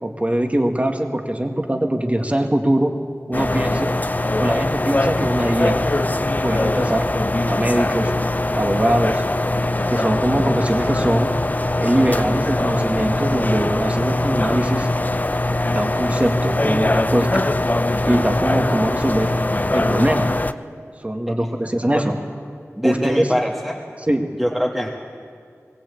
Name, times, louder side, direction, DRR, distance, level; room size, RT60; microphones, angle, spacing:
voice 1, 0.0-2.9 3.3-3.9 4.4-5.8 6.4-7.1 7.5-8.1 8.5-9.2 9.9-11.3 11.8-14.9 15.7-17.5 18.1-19.3 19.7-20.3 21.0-22.2 22.8-23.3 24.1-24.2, right 1 dB, 25° right, 4 dB, 1.9 m, -21 dB
sound 1, 3.3-20.5, left 2 dB, 35° left, 0.6 m, -21 dB
voice 2, 22.8-23.8 24.4-24.9, equal, 5° right, -1 dB, 1.7 m, -23 dB
21.0 x 18.0 x 8.5 m, 2.3 s
wide cardioid pair, 55°, 5 cm